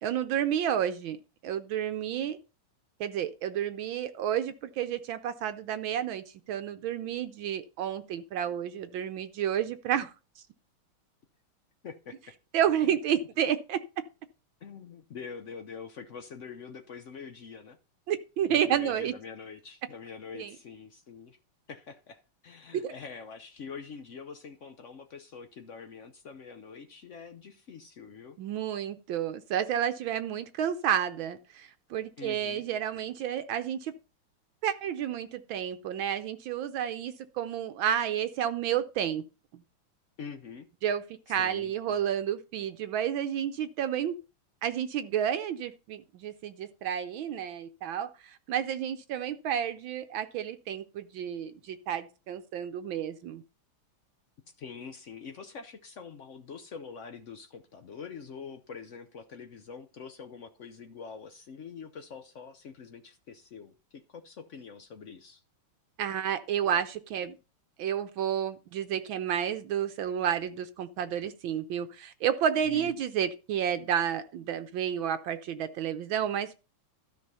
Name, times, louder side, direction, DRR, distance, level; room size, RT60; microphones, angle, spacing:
voice 1, 0.0-1.2 1.4-2.4 3.0-10.4 12.5-13.8 18.1-19.1 20.3-20.5 22.7-22.9 28.4-33.9 34.6-39.2 40.8-41.0 41.3-44.2 44.6-53.4 66.0-67.4 67.8-76.6, right 9 dB, 70° right, 1.3 m, -31 dB
voice 2, 11.8-12.2 12.8-12.9 14.6-17.8 18.5-21.4 21.7-28.4 32.2-32.6 40.2-40.7 41.3-42.0 54.6-65.4 72.6-72.9, left 6 dB, 85° left, 0.6 m, -45 dB
13.0 x 5.2 x 5.5 m
omnidirectional pair, 2.4 m